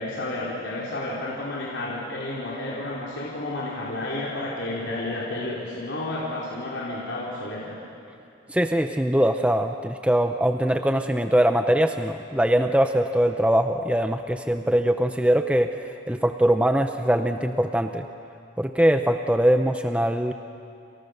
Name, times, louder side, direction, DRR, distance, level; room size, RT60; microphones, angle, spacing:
voice 1, 0.0-7.8, left 2 dB, 70° left, -6 dB, 4.6 m, -31 dB
voice 2, 8.5-15.7 16.1-18.1 18.6-20.3, right 1 dB, 5° right, 6 dB, 0.7 m, -22 dB
30.0 x 28.5 x 6.7 m, 2.5 s
head